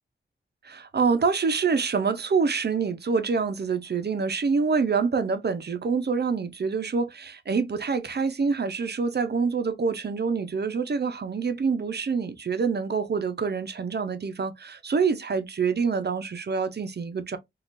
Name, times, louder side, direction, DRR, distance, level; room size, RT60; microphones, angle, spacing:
voice 1, 0.6-17.4, right 5 dB, 55° right, 0.5 m, -26 dB
3.6 x 2.4 x 2.5 m
wide cardioid pair, 70°, 21 cm